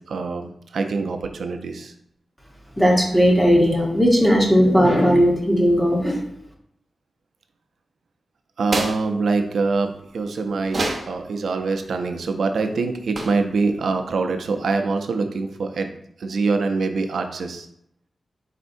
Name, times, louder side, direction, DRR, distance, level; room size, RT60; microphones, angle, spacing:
voice 1, 0.1-1.9 8.6-15.9 16.2-17.7, right 4 dB, 90° right, 5 dB, 0.5 m, -24 dB
voice 2, 2.8-6.2, equal, 10° left, -2 dB, 1.0 m, -17 dB
sound 1, 8.6-9.1 10.6-11.2 13.2-13.5, right 2 dB, 50° right, 0.7 m, -26 dB
4.4 x 4.1 x 2.6 m, 0.71 s
wide cardioid pair, 125°, 0 cm